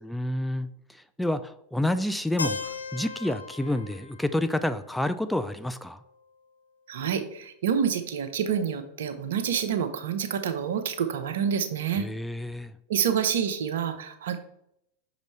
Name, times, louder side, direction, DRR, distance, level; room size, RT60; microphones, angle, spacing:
voice 1, 0.0-6.0 11.9-12.7, left 1 dB, 5° left, 11 dB, 0.4 m, -29 dB
Keyboard (musical), 2.4-6.3, left 4 dB, 90° left, 0.5 m, -38 dB
voice 2, 6.9-12.1 12.9-14.4, right 7 dB, 70° right, 9 dB, 0.7 m, -27 dB
6.3 x 5.0 x 3.2 m, 0.75 s
hypercardioid pair, 90°, 0 cm